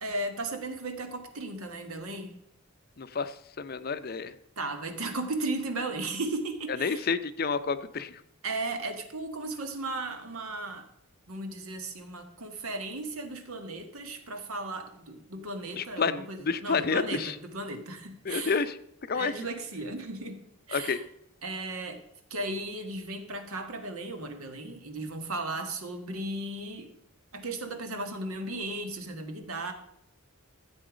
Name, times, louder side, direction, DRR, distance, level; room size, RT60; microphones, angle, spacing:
voice 1, 0.0-2.4 4.6-7.1 8.4-10.9 11.3-18.7 19.1-20.4 20.7-21.0 21.4-22.0 22.3-26.9 27.3-29.7, right 2 dB, 75° right, 6 dB, 1.6 m, -36 dB
voice 2, 3.0-4.3 6.8-8.2 15.8-17.4 18.2-18.8 19.1-19.3 20.7-21.0, left 5 dB, 40° left, 12 dB, 0.5 m, -30 dB
14.0 x 7.8 x 5.1 m, 0.77 s
head